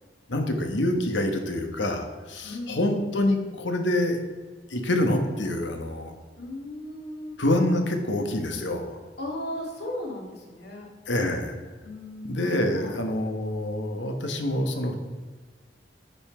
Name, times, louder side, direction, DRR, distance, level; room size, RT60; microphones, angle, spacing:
voice 1, 0.3-4.2 4.7-6.1 7.4-9.0 11.1-11.5 12.2-15.0, left 1 dB, 85° left, 5 dB, 1.2 m, -26 dB
voice 2, 2.4-2.9 6.4-7.4 9.2-10.9 11.8-12.5 12.7-13.0, left 1 dB, 60° left, -1 dB, 2.0 m, -36 dB
9.7 x 5.7 x 4.4 m, 1.4 s
head